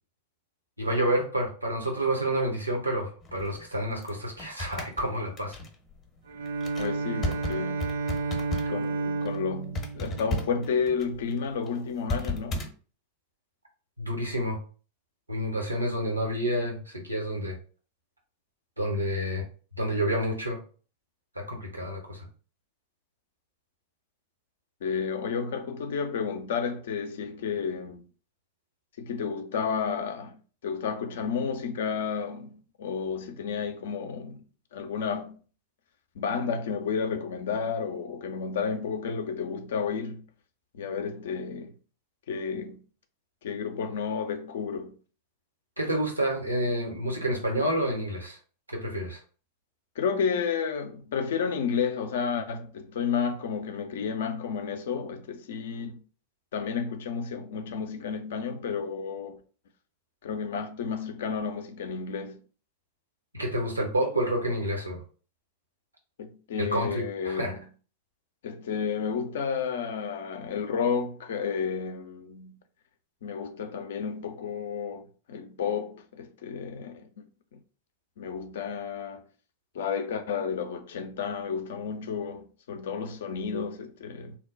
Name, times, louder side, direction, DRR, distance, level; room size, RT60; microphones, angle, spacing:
voice 1, 0.8-5.6 14.0-14.6 15.3-17.6 18.8-19.4 19.8-20.6 21.3-22.3 45.8-48.4 48.7-49.2 63.3-65.0 66.6-67.5, right 1 dB, 85° right, 0.9 m, -29 dB
sound 1, 3.2-8.9 9.1-9.4 9.7-12.7, left 1 dB, 25° left, 0.7 m, -35 dB
Bowed string instrument, 6.3-11.2, right 4 dB, 65° right, 0.3 m, -32 dB
voice 2, 6.8-7.9 8.7-12.7 24.8-28.0 29.0-34.5 34.7-35.4 36.2-40.3 40.7-41.8 42.3-42.8 43.4-45.0 50.0-56.0 56.5-59.4 60.2-62.4 66.2-67.6 68.4-72.6 73.2-77.3 77.5-77.6 78.2-79.3 79.7-84.4, left 6 dB, 60° left, 0.4 m, -31 dB
2.9 x 2.1 x 3.8 m
figure-of-eight pair, 90°, 0 cm